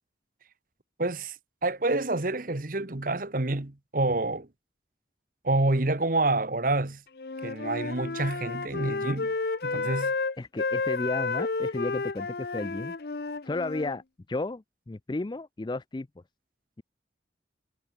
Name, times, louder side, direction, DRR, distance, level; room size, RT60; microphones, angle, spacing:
voice 1, 1.0-1.4 1.6-4.5 5.4-7.0 7.4-9.3 9.6-10.1, right 2 dB, 45° right, 1.3 m, -28 dB
Wind instrument woodwind instrument, 7.2-14.0, left 4 dB, 55° left, 0.7 m, -31 dB
voice 2, 10.4-13.0 13.4-14.0 14.3-16.1, left 2 dB, 25° left, 0.4 m, -33 dB
head